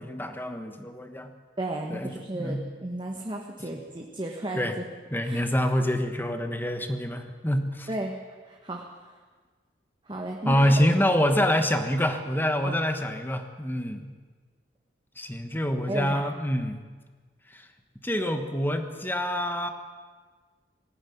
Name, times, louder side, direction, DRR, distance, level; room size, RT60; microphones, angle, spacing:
voice 1, 0.0-1.3 1.9-2.6 4.5-4.8 5.1-7.9 10.4-14.1 15.2-16.8 17.5-17.7 18.0-19.7, equal, 10° left, 7 dB, 1.4 m, -26 dB
voice 2, 1.6-4.8 5.2-5.4 7.9-8.2 8.4-8.8 10.1-10.9 12.6-12.7 15.9-16.2, right 1 dB, 25° right, 1 dB, 1.5 m, -34 dB
19.0 x 15.0 x 9.4 m, 1.5 s
head